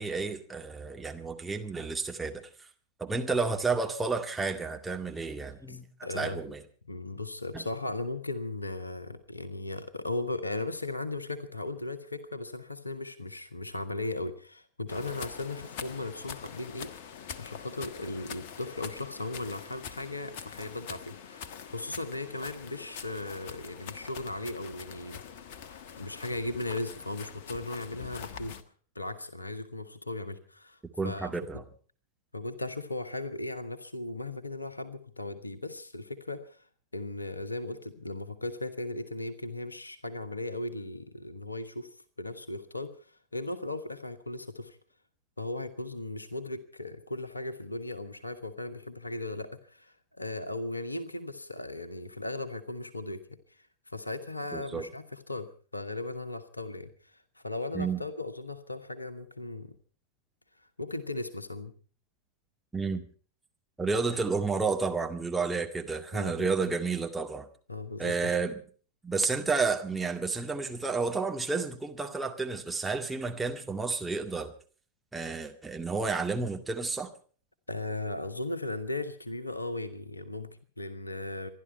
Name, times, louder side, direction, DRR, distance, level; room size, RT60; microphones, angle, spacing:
voice 1, 0.0-2.4 3.0-5.9 6.1-6.6 7.5-7.6 31.0-31.6 54.5-54.9 57.7-58.0 62.7-63.0 63.8-67.5 68.0-68.6 69.0-74.5 75.1-77.1, right 4 dB, 10° right, 3 dB, 2.1 m, -31 dB
voice 2, 5.7-6.5 6.9-16.9 17.4-25.2 26.0-28.6 28.9-31.6 32.3-36.7 36.9-41.9 42.2-44.8 45.4-53.2 53.5-59.7 60.8-61.7 66.1-66.5 67.7-68.4 77.7-81.5, left 2 dB, 80° left, 12 dB, 1.3 m, -37 dB
sound 1, 14.9-28.6, left 7 dB, 50° left, 1.3 m, -44 dB
27.5 x 11.5 x 4.5 m, 0.42 s
figure-of-eight pair, 90°, 0 cm